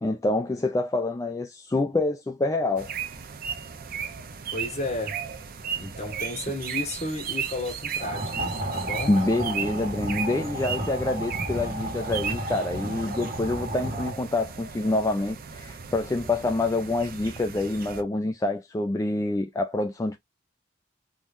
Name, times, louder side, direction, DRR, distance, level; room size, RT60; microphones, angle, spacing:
voice 1, 0.0-2.9 9.1-20.2, left 2 dB, 15° left, 0.4 m, -26 dB
sound 1, 2.8-18.0, right 7 dB, 50° right, 0.7 m, -36 dB
voice 2, 4.5-5.2 5.7-9.1, left 2 dB, 35° left, 1.6 m, -33 dB
sound 2, 8.0-14.1, right 1 dB, 35° right, 1.7 m, -33 dB
3.6 x 3.0 x 2.5 m
head